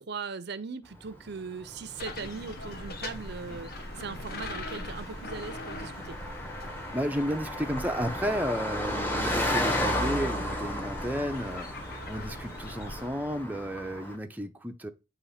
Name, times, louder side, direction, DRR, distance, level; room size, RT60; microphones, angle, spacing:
voice 1, 0.0-6.2, right 5 dB, 55° right, 0.5 m, -39 dB
Car passing by, 1.0-14.2, left 1 dB, 10° left, 1.1 m, -35 dB
sound 1, 2.0-13.1, left 2 dB, 50° left, 1.3 m, -42 dB
voice 2, 6.9-11.7 12.1-14.9, equal, 10° right, 0.6 m, -32 dB
8.3 x 3.1 x 5.7 m
head